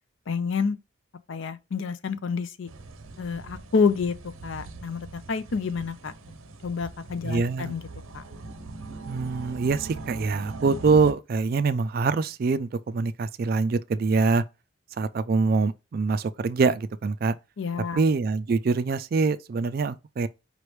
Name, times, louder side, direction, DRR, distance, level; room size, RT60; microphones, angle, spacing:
voice 1, 0.3-0.8 1.3-2.7 3.2-4.1 4.4-6.1 6.6-7.8 8.1-8.2 17.6-18.0, left 5 dB, 65° left, 0.5 m, -28 dB
sound 1, 2.7-11.1, right 3 dB, 80° right, 0.7 m, -41 dB
voice 2, 7.2-7.7 9.1-14.4 15.0-17.3 18.0-20.3, right 4 dB, 45° right, 0.3 m, -24 dB
5.1 x 3.2 x 3.2 m
head